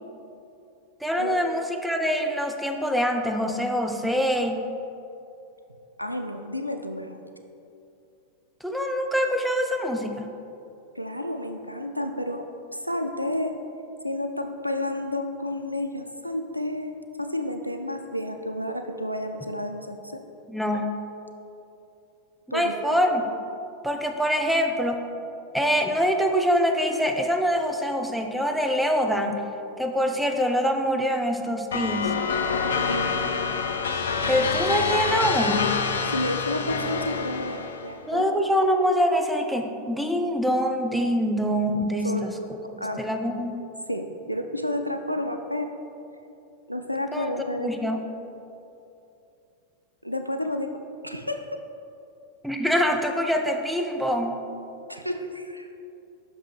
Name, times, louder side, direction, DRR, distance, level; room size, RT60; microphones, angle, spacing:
voice 1, 1.0-4.6 8.6-10.3 20.5-21.0 22.5-23.2 23.8-25.0 25.5-29.4 29.8-32.2 34.3-35.8 38.1-42.3 42.8-43.6 47.1-47.3 47.6-48.0 52.4-54.4, equal, ahead, 4 dB, 0.5 m, -24 dB
voice 2, 6.0-7.2 11.0-13.6 14.0-20.2 22.5-23.0 32.9-33.3 36.0-38.2 42.0-42.4 42.6-43.0 43.9-45.7 46.7-47.9 50.0-51.6 54.9-55.7, left 1 dB, 90° right, 5 dB, 0.4 m, -31 dB
sound 1, 31.7-37.9, left 5 dB, 65° left, 0.4 m, -27 dB
6.0 x 5.3 x 4.4 m, 2.7 s
figure-of-eight pair, 90°, 0 cm